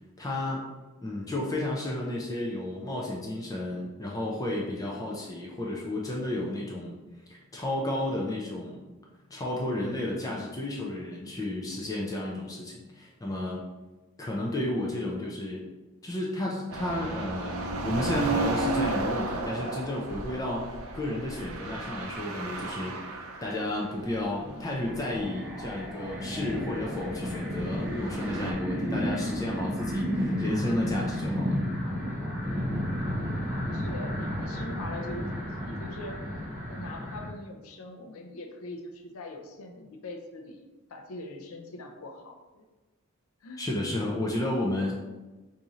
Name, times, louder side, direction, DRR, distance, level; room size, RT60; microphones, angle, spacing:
voice 1, 0.2-0.7 1.0-7.0 7.3-8.9 9.3-13.6 14.2-15.6 16.0-31.6 43.6-44.9, left 1 dB, 15° left, -2 dB, 0.4 m, -32 dB
sound 1, 16.7-23.8 24.1-24.2 24.8-25.3 25.6-25.8 27.7-28.5, right 3 dB, 70° right, 0.5 m, -33 dB
sound 2, 24.9-37.3, equal, 10° right, 1.0 m, -32 dB
voice 2, 33.1-42.6 43.4-43.6, left 2 dB, 70° left, 4 dB, 0.5 m, -42 dB
3.0 x 2.7 x 3.6 m, 1.2 s
head